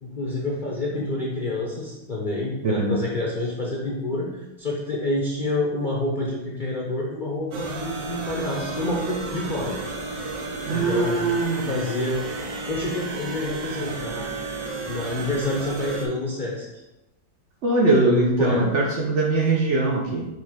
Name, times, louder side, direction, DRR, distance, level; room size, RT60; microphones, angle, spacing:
voice 1, 0.0-9.8 10.7-12.3 12.7-14.3 14.9-16.7 18.1-18.7, left 2 dB, 40° left, -3 dB, 0.7 m, -28 dB
voice 2, 2.6-3.0 10.6-11.7 17.6-20.3, right 2 dB, 60° right, 0 dB, 0.7 m, -21 dB
sound 1, 7.5-16.1, right 3 dB, 85° right, 1.6 m, -33 dB
6.4 x 2.9 x 5.1 m, 0.98 s
omnidirectional pair, 2.0 m